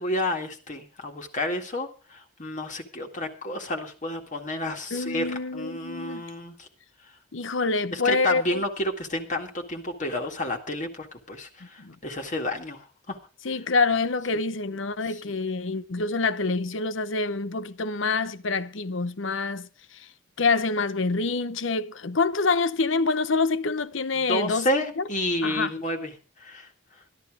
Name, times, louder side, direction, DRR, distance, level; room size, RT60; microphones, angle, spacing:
voice 1, 0.0-6.7 7.9-13.2 15.1-15.4 24.2-26.1 26.4-26.7, left 1 dB, 40° left, 2.1 m, -30 dB
voice 2, 4.9-6.2 7.3-8.6 11.8-12.0 13.4-20.1 20.4-24.7 25.0-25.1 25.4-25.7, left 3 dB, 70° left, 0.9 m, -26 dB
13.5 x 12.0 x 4.9 m
head